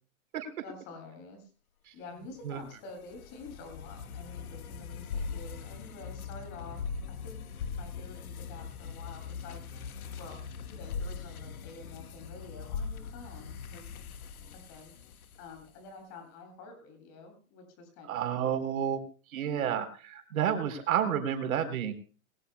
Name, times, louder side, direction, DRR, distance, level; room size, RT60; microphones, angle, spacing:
voice 1, 0.6-1.5 1.9-6.8 7.1-9.6 10.2-10.4 10.7-14.0 14.7-14.9 15.4-18.6, left 3 dB, 40° left, 5 dB, 7.5 m, -48 dB
sound 1, 2.4-15.7, left 5 dB, 80° left, 1.6 m, -41 dB
voice 2, 18.0-19.0 19.3-21.9, right 9 dB, 75° right, 6 dB, 3.9 m, -30 dB
21.5 x 17.0 x 2.3 m, 0.37 s
hypercardioid pair, 135°, 43 cm